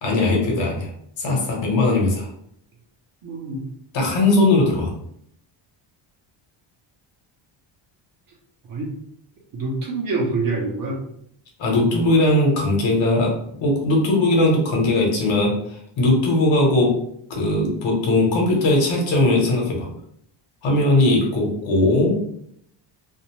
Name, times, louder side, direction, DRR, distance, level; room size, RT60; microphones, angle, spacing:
voice 1, 0.0-0.9 1.2-2.3 3.9-4.9 11.6-13.3 13.6-16.9 17.3-19.9 20.6-22.2, left 2 dB, 70° left, -1 dB, 1.1 m, -19 dB
voice 2, 3.2-3.6 8.7-8.9 9.5-11.0, right 3 dB, 45° right, -1 dB, 0.8 m, -26 dB
2.6 x 2.1 x 3.0 m, 0.71 s
cardioid pair, 145°, 47 cm